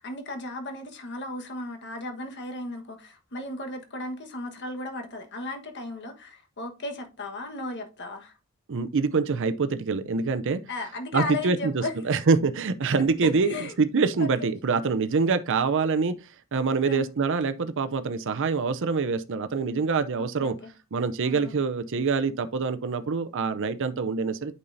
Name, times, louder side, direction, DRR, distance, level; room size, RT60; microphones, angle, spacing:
voice 1, 0.0-8.3 10.7-11.9 13.2-13.7 14.2-14.5 16.8-17.1 20.2-20.7 21.2-21.6, left 2 dB, 55° left, 1.4 m, -35 dB
voice 2, 8.7-10.6 11.1-16.2 16.5-20.6 20.9-24.5, right 4 dB, 60° right, 0.6 m, -25 dB
8.6 x 5.5 x 2.6 m
head